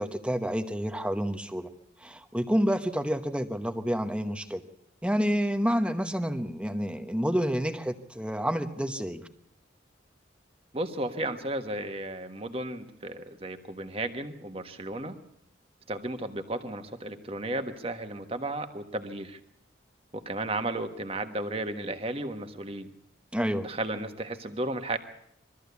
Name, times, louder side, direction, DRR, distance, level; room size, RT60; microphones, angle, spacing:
voice 1, 0.0-1.7 2.0-4.6 5.0-9.2 23.3-23.7, equal, 5° right, 8 dB, 1.0 m, -29 dB
voice 2, 10.7-15.1 15.9-19.4 20.1-22.9 23.6-25.0, right 1 dB, 30° right, 7 dB, 1.4 m, -34 dB
22.5 x 14.0 x 8.3 m, 0.75 s
head